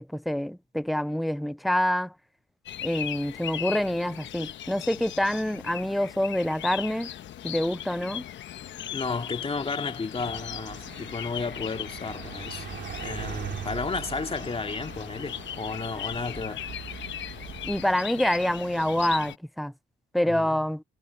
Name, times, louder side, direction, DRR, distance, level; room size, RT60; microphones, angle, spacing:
voice 1, 0.0-2.1 2.8-7.1 7.4-8.2 17.6-19.7 20.1-20.8, left 1 dB, ahead, 0.4 m, -26 dB
sound 1, 2.7-19.4, left 11 dB, 70° left, 1.1 m, -38 dB
voice 2, 8.9-12.7 13.0-16.7 20.2-20.6, left 4 dB, 30° left, 2.5 m, -33 dB
sound 2, 10.2-17.9, right 9 dB, 65° right, 2.7 m, -41 dB
cardioid pair, 90°, 20 cm